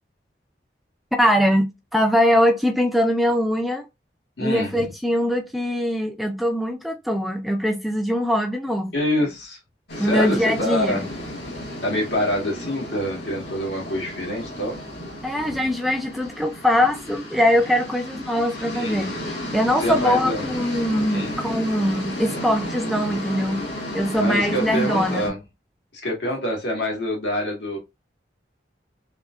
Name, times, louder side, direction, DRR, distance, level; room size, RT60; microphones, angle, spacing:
voice 1, 1.2-3.8 4.4-8.9 10.0-11.0 15.2-19.1 19.5-23.7 23.9-25.3, equal, ahead, 0.3 m, -22 dB
voice 2, 4.4-4.7 8.9-9.6 10.0-11.1 11.8-14.7 18.7-19.1 19.8-20.5 21.1-21.4 24.1-25.4 25.9-27.8, left 1 dB, 85° left, 1.7 m, -26 dB
sound 1, 9.9-25.3, left 1 dB, 70° left, 1.5 m, -33 dB
3.5 x 2.7 x 2.4 m
head